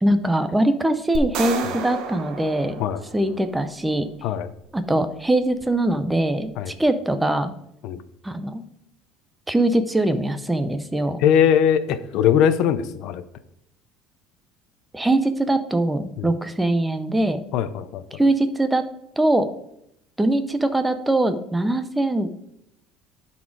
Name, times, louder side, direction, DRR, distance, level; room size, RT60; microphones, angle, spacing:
voice 1, 0.0-2.8 3.1-4.1 4.7-7.5 8.2-8.6 9.5-11.2 14.9-17.4 18.2-18.8 19.2-19.5 20.2-22.3, right 1 dB, 5° right, 10 dB, 0.6 m, -22 dB
sound 1, 1.1-3.5, right 6 dB, 55° right, 1.1 m, -31 dB
voice 2, 11.2-13.2 16.2-16.3 17.5-18.2, left 9 dB, 55° left, 12 dB, 0.6 m, -20 dB
11.0 x 4.3 x 4.6 m, 0.77 s
cardioid pair, 170°, 0 cm